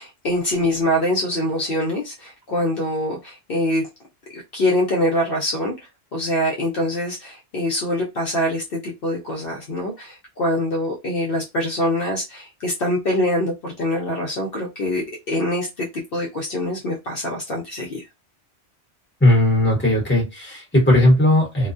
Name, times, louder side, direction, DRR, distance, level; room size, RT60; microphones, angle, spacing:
voice 1, 0.0-3.9 4.3-5.7 6.1-18.0, left 1 dB, 60° left, 0.8 m, -24 dB
voice 2, 19.2-21.7, left 1 dB, 10° left, 1.0 m, -17 dB
2.3 x 2.2 x 2.4 m
omnidirectional pair, 1.1 m